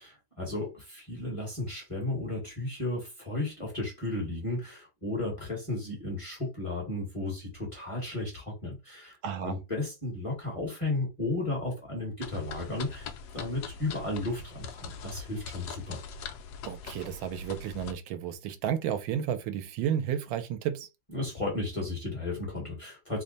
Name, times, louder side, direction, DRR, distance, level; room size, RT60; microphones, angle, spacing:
voice 1, 0.0-16.0 21.1-23.2, left 2 dB, 20° left, 1.3 m, -34 dB
voice 2, 9.2-9.6 16.6-20.9, right 9 dB, 90° right, 1.4 m, -32 dB
sound 1, 12.2-17.9, left 5 dB, 70° left, 1.0 m, -42 dB
3.3 x 2.2 x 3.9 m
omnidirectional pair, 2.1 m